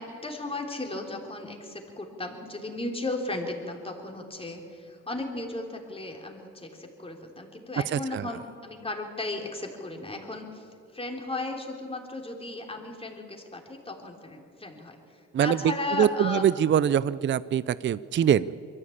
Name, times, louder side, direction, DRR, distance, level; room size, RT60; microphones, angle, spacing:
voice 1, 0.0-10.7 10.9-16.5, left 2 dB, 20° left, 2 dB, 3.6 m, -35 dB
voice 2, 7.9-8.3 15.3-15.6 16.0-18.5, right 9 dB, 40° right, 18 dB, 0.5 m, -23 dB
22.5 x 14.5 x 8.7 m, 2.5 s
cardioid pair, 90°, 30 cm